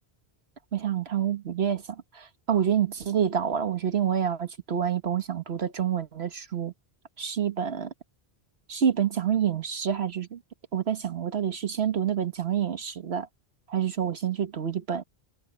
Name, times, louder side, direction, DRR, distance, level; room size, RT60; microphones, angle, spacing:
voice 1, 0.7-6.7 7.2-7.9 8.7-10.4 10.7-13.3 13.7-15.0, right 8 dB, 75° right, 1.5 m, -27 dB
omnidirectional pair, 1.1 m